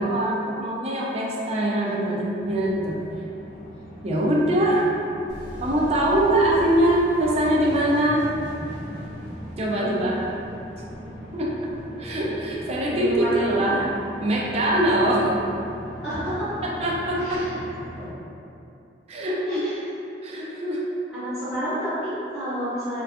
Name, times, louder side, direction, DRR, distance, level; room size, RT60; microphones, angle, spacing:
voice 1, 0.0-3.0 4.0-5.0 5.6-8.3 9.6-10.2 11.3-11.7 12.0-13.9 14.2-15.4 16.6-17.4 19.1-19.6 20.2-20.9, right 1 dB, 35° right, -3 dB, 0.3 m, -23 dB
voice 2, 1.4-2.2 9.7-10.2 12.8-13.7 16.0-16.5 17.2-17.5 18.0-18.1 19.5-19.8 21.1-23.0, equal, 5° right, -18 dB, 0.9 m, -30 dB
sound 1, 2.4-18.1, equal, 35° left, 0.5 m, -40 dB
sound 2, 5.3-11.9, equal, 75° right, 0.6 m, -40 dB
2.3 x 2.2 x 2.5 m, 2.7 s
head